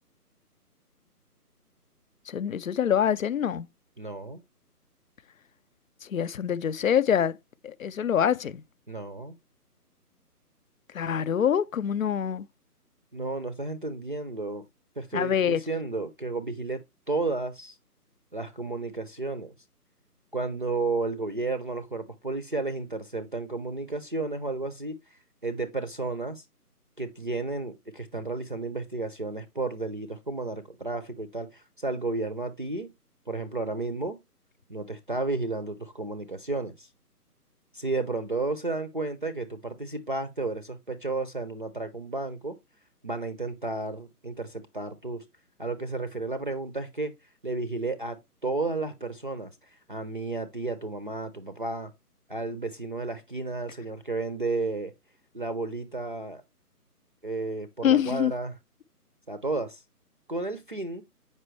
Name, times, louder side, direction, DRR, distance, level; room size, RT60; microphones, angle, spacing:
voice 1, 2.3-3.7 6.0-7.4 7.6-8.6 10.9-12.5 15.1-15.6 57.8-58.3, left 9 dB, 60° left, 0.5 m, -25 dB
voice 2, 4.0-4.4 8.9-9.4 13.1-14.6 15.0-16.8 17.1-17.8 18.3-19.5 20.3-26.4 27.0-32.9 33.3-34.2 34.7-36.9 37.7-42.6 43.0-45.2 45.6-47.1 47.4-48.2 48.4-49.5 49.9-51.9 52.3-54.9 55.3-56.4 57.2-58.5 59.3-59.8 60.3-61.0, right 3 dB, 35° right, 0.5 m, -32 dB
7.9 x 5.4 x 3.1 m
figure-of-eight pair, 155°, 47 cm